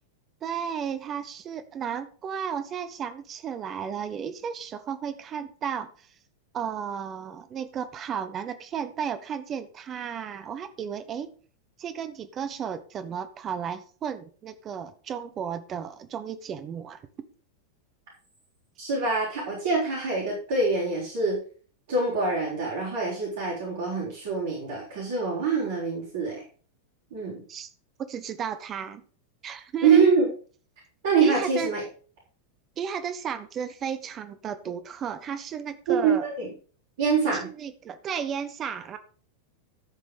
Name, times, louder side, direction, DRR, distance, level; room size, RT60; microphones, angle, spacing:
voice 1, 0.4-6.1 6.5-11.3 11.8-17.0 27.5-27.7 28.1-29.0 29.4-30.0 31.2-31.7 32.8-36.3 37.3-39.0, right 7 dB, 30° right, 10 dB, 1.2 m, -34 dB
voice 2, 18.8-21.4 21.9-26.4 27.1-27.4 29.8-30.3 31.0-31.8 35.9-36.5 37.0-37.5, right 4 dB, 55° right, -5 dB, 5.5 m, -25 dB
13.5 x 6.1 x 5.3 m, 0.40 s
figure-of-eight pair, 90°, 0 cm